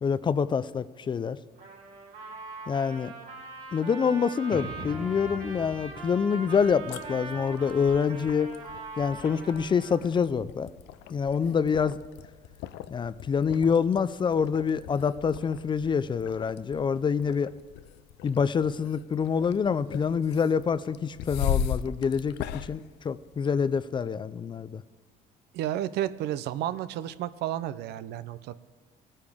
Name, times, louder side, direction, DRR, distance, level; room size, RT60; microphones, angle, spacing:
voice 1, 0.0-1.4 2.7-3.1 3.7-8.5 9.0-10.7 11.1-12.0 12.9-17.5 18.2-24.8, left 6 dB, 30° left, 16 dB, 0.4 m, -26 dB
Trumpet, 1.6-10.0, right 3 dB, 60° right, 3.9 m, -42 dB
sound 1, 4.5-8.2, right 1 dB, 35° right, 1.7 m, -43 dB
sound 2, 6.6-23.8, left 9 dB, 85° left, 0.5 m, -39 dB
voice 2, 25.5-28.5, right 12 dB, 80° right, 15 dB, 0.5 m, -32 dB
18.0 x 9.8 x 3.5 m, 1.3 s
cardioid pair, 110°, 17 cm